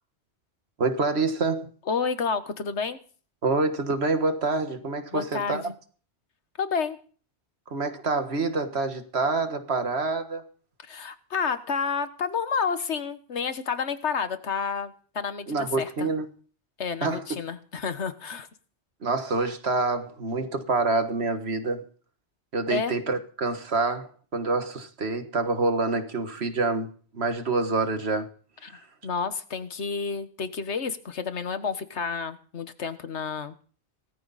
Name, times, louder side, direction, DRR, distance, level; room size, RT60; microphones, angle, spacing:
voice 1, 0.8-1.7 3.4-5.6 7.7-10.5 15.5-16.3 17.0-17.2 19.0-21.9 22.5-28.3, right 3 dB, 70° right, 1.7 m, -27 dB
voice 2, 1.9-3.0 5.1-5.7 6.6-7.0 10.8-16.1 16.8-18.5 22.7-22.9 28.6-33.5, left 5 dB, 90° left, 1.5 m, -30 dB
18.5 x 13.5 x 4.1 m
omnidirectional pair, 1.1 m